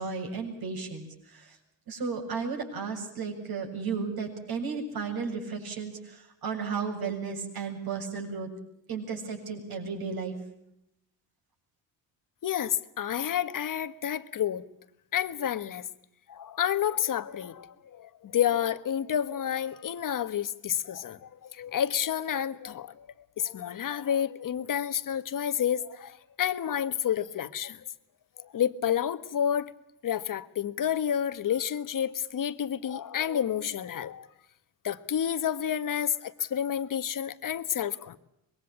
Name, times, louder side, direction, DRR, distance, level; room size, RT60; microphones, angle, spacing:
voice 1, 0.0-1.6 1.9-8.5 8.9-10.3, right 5 dB, 60° right, 7.5 m, -34 dB
voice 2, 12.4-14.6 15.1-15.8 16.3-23.1 23.4-27.8 28.4-29.7 30.0-34.3 34.8-38.2, left 9 dB, 50° left, 1.5 m, -30 dB
25.0 x 22.0 x 8.3 m
cardioid pair, 105°, 42 cm